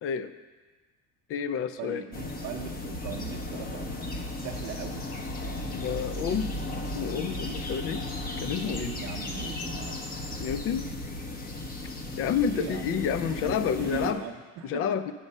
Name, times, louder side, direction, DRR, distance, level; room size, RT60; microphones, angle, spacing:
voice 1, 0.0-0.3 1.3-2.0 5.7-6.6 6.9-8.0 8.4-8.9 10.4-10.9 12.2-14.2 14.6-15.1, left 7 dB, 45° left, 13 dB, 0.5 m, -29 dB
voice 2, 1.8-4.1 4.4-5.1 8.6-10.0 12.5-12.9 13.2-13.5 13.8-14.8, right 8 dB, 55° right, 0 dB, 0.8 m, -40 dB
sound 1, 2.1-14.1, left 2 dB, 25° left, 0.9 m, -35 dB
8.3 x 5.9 x 5.4 m, 1.3 s
cardioid pair, 125°, 32 cm